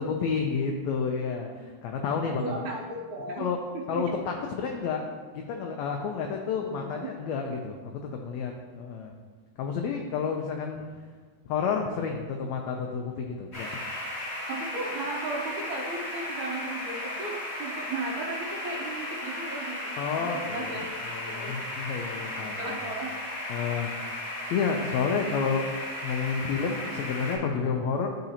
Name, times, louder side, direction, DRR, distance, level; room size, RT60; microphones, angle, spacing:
voice 1, 0.0-2.5 3.4-3.6 3.9-5.1 5.3-7.9 8.2-9.1 9.6-10.9 11.4-13.7 20.0-20.8 21.1-22.8 23.5-24.1 24.5-25.6 26.0-28.1, left 5 dB, 80° left, 2 dB, 1.6 m, -30 dB
voice 2, 2.4-3.5 3.7-4.0 6.6-7.1 14.5-20.9 21.3-21.6 22.3-23.1, right 3 dB, 75° right, -3 dB, 2.2 m, -36 dB
sound 1, 13.5-27.4, left 1 dB, 60° left, 0.6 m, -35 dB
11.5 x 3.9 x 2.8 m, 1.5 s
omnidirectional pair, 3.5 m